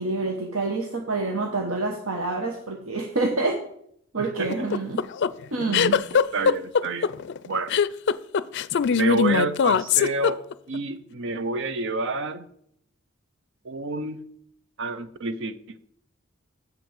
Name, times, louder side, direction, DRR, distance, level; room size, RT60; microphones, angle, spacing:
voice 1, 0.0-3.6 4.1-5.0 5.5-6.0, right 3 dB, 80° right, 3 dB, 1.1 m, -27 dB
voice 2, 4.2-4.7 5.6-5.8 6.3-7.1 7.4-7.7 8.9-12.5 13.6-14.2 14.8-15.8, right 3 dB, 65° right, 13 dB, 0.7 m, -29 dB
sound 1, 4.5-10.8, left 6 dB, 55° left, 0.4 m, -21 dB
7.7 x 6.0 x 7.2 m, 0.69 s
head